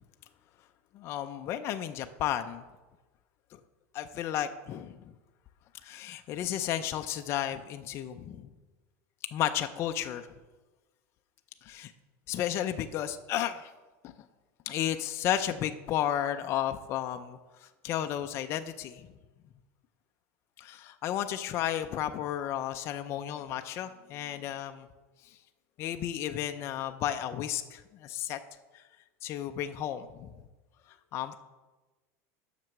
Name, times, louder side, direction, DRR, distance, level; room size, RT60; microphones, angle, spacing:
voice 1, 0.9-2.6 3.9-5.0 5.8-8.5 9.3-10.3 11.6-11.9 12.3-13.7 14.0-14.1 14.7-19.1 20.6-24.9 25.8-28.4 28.7-28.8 29.2-30.3 31.1-31.4, left 11 dB, 30° left, 7 dB, 0.4 m, -33 dB
7.6 x 5.9 x 6.5 m, 1.2 s
supercardioid pair, 165°, 8 cm